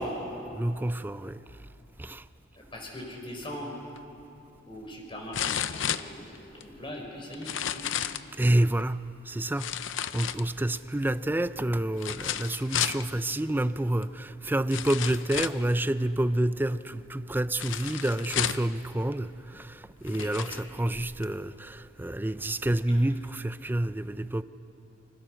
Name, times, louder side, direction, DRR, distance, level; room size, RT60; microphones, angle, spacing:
voice 1, 0.0-1.6 2.0-2.2 8.4-24.4, right 1 dB, 10° right, 0.5 m, -29 dB
voice 2, 2.6-3.8 4.7-7.9 20.1-20.5 22.9-23.0, equal, 25° left, 5.1 m, -40 dB
sound 1, 4.0-4.1 5.3-6.6 7.3-8.3 9.6-10.8 12.0-13.0 14.0-14.1 14.7-15.7 17.6-18.7 19.5-19.6 20.1-20.6 21.2-21.3, left 9 dB, 70° left, 0.7 m, -32 dB
28.0 x 25.0 x 6.4 m
head